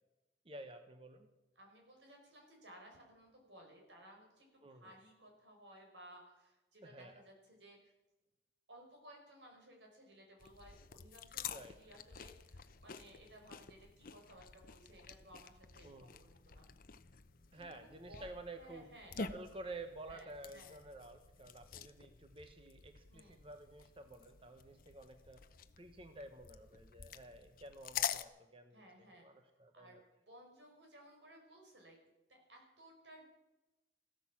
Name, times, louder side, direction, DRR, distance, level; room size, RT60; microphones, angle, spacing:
voice 1, 0.4-1.3 4.6-5.0 6.8-7.2 11.5-11.7 15.8-16.3 17.5-18.9 19.2-25.4 25.8-30.0, right 2 dB, 30° right, 7 dB, 1.0 m, -51 dB
voice 2, 1.6-7.9 8.7-16.7 17.5-19.2 20.1-20.8 23.1-23.4 28.7-29.3 29.7-30.0 30.3-32.0 32.3-33.2, right 1 dB, 90° right, 1 dB, 5.5 m, -59 dB
sound 1, 10.4-28.2, left 7 dB, 50° left, 0.7 m, -48 dB
15.5 x 13.0 x 7.3 m, 1.0 s
head